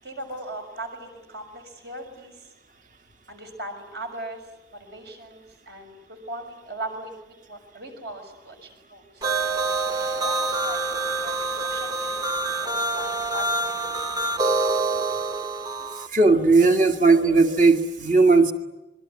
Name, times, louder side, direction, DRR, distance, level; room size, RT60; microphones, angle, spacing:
voice 1, 0.0-2.5 3.3-7.1 7.5-9.2 10.0-13.8, right 1 dB, 65° right, 5 dB, 6.5 m, -39 dB
sound 1, 9.2-16.1, right 3 dB, 20° right, 0.9 m, -26 dB
voice 2, 16.0-18.5, right 3 dB, 45° right, 6 dB, 1.9 m, -17 dB
27.0 x 22.5 x 9.7 m, 1.0 s
head